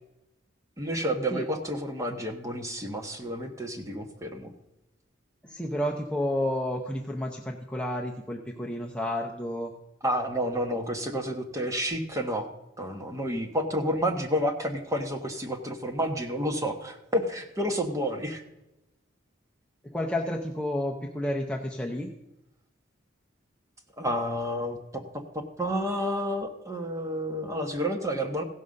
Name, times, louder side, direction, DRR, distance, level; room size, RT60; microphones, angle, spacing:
voice 1, 0.8-4.5 10.0-12.5 12.8-18.4 24.0-25.0 25.3-28.4, equal, 15° right, 4 dB, 1.1 m, -30 dB
voice 2, 5.4-9.7 19.8-22.1, left 1 dB, 5° left, 0 dB, 0.6 m, -31 dB
15.5 x 5.5 x 6.4 m, 0.94 s
head